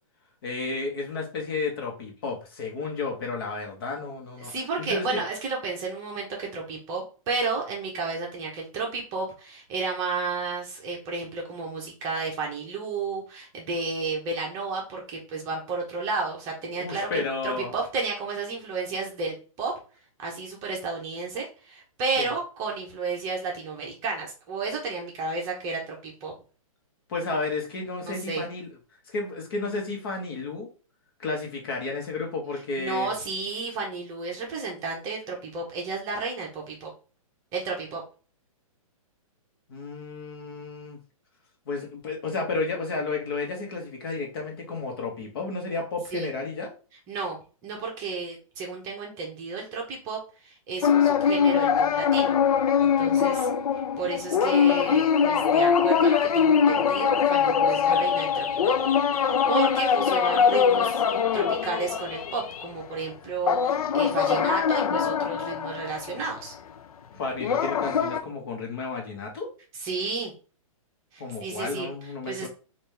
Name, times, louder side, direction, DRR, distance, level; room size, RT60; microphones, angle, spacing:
voice 1, 0.4-4.5 4.8-5.2 16.8-17.7 22.2-22.3 27.1-28.7 29.1-30.7 31.2-33.1 39.7-41.0 41.7-46.7 67.1-69.5 71.2-72.5, left 3 dB, 40° left, 1 dB, 1.3 m, -32 dB
voice 2, 4.4-19.7 20.2-26.3 28.1-28.4 32.8-36.9 37.5-38.0 46.1-46.3 47.1-52.3 52.8-53.5 54.0-58.8 59.2-66.5 69.8-70.3 71.1-71.9 72.3-72.5, right 4 dB, 15° right, -1 dB, 0.9 m, -32 dB
sound 1, 50.8-62.7 63.5-66.4 67.4-68.2, left 7 dB, 80° left, 0.5 m, -22 dB
4.0 x 2.6 x 3.3 m, 0.35 s
hypercardioid pair, 170°, 18 cm